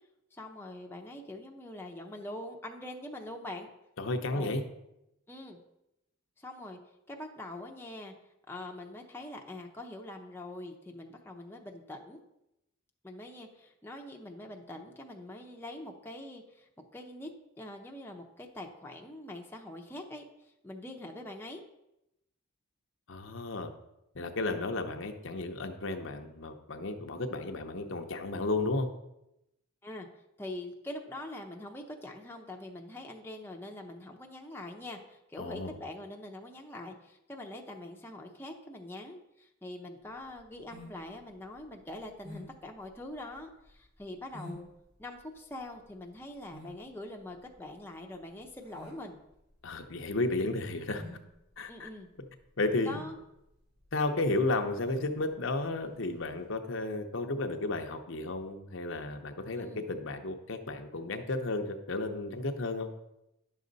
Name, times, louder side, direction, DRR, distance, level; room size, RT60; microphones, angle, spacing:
voice 1, 0.3-3.7 4.3-4.6 5.3-5.6 6.4-6.8 7.1-8.1 8.5-12.2 13.0-17.3 17.6-21.6 29.8-30.1 30.4-44.7 45.0-49.2 51.7-52.1 52.8-53.2 59.6-59.8, left 1 dB, 10° left, 1 dB, 0.7 m, -44 dB
voice 2, 4.0-4.6 23.1-23.7 24.1-28.9 35.4-35.7 49.6-51.0 51.6-51.9 52.6-52.9 53.9-62.9, left 2 dB, 60° left, 6 dB, 0.8 m, -33 dB
sound 1, 40.1-56.4, equal, 85° right, 3.6 m, -51 dB
10.0 x 6.4 x 4.0 m, 0.88 s
head